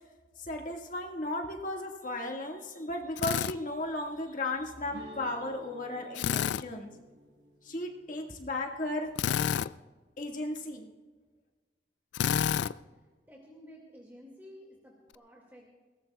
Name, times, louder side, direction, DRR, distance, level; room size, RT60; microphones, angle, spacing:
voice 1, 0.4-6.9 7.6-9.1 10.2-10.9, left 1 dB, 45° left, 1 dB, 1.9 m, -35 dB
Drill, 3.2-3.6 6.2-6.6 9.2-9.7 12.1-12.7, left 8 dB, 85° left, 0.3 m, -28 dB
sound 1, 4.9-9.8, right 1 dB, 85° right, 1.2 m, -53 dB
voice 2, 13.3-15.7, equal, 10° right, -2 dB, 2.2 m, -52 dB
21.5 x 18.0 x 2.4 m, 1.4 s
head